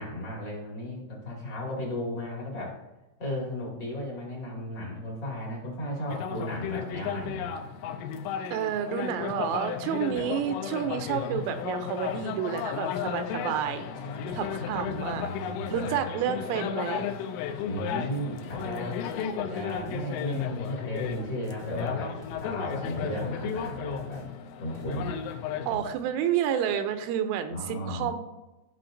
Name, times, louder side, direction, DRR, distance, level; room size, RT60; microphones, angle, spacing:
voice 1, 0.0-2.8 3.2-7.6 13.9-16.4 17.6-24.3 24.6-25.2 25.7-25.8 27.5-28.1, equal, 40° left, -4 dB, 1.7 m, -35 dB
sound 1, 6.1-25.8, left 8 dB, 80° left, 3.0 m, -34 dB
voice 2, 8.5-13.9 14.3-15.3 15.7-17.1 25.7-28.2, right 9 dB, 85° right, 8 dB, 2.9 m, -30 dB
sound 2, 18.0-25.2, equal, 50° right, 1.3 m, -49 dB
15.0 x 5.8 x 2.6 m, 1.1 s
omnidirectional pair, 5.6 m